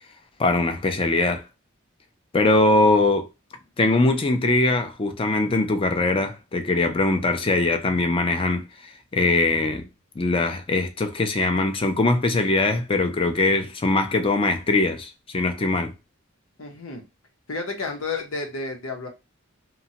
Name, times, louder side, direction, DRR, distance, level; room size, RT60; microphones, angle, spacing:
voice 1, 0.4-1.4 2.3-3.3 3.8-9.9 10.2-15.9, left 2 dB, 25° left, 0.4 m, -22 dB
voice 2, 16.6-17.0 17.5-19.1, left 3 dB, 80° left, 0.9 m, -31 dB
2.9 x 2.2 x 2.7 m
head